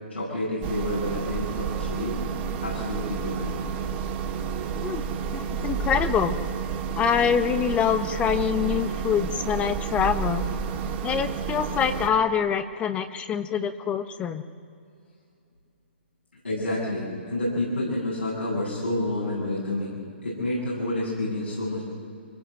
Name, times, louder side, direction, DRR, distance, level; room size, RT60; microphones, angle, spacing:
voice 1, 0.1-2.2 2.6-3.6 16.4-21.8, left 1 dB, 85° left, -7 dB, 8.0 m, -29 dB
sound 1, 0.6-12.1, right 6 dB, 30° right, 2.8 m, -30 dB
voice 2, 5.3-6.4 7.0-10.5 11.0-14.4, left 7 dB, 20° left, 9 dB, 1.0 m, -25 dB
25.5 x 17.0 x 7.9 m, 2.5 s
figure-of-eight pair, 120°, 6 cm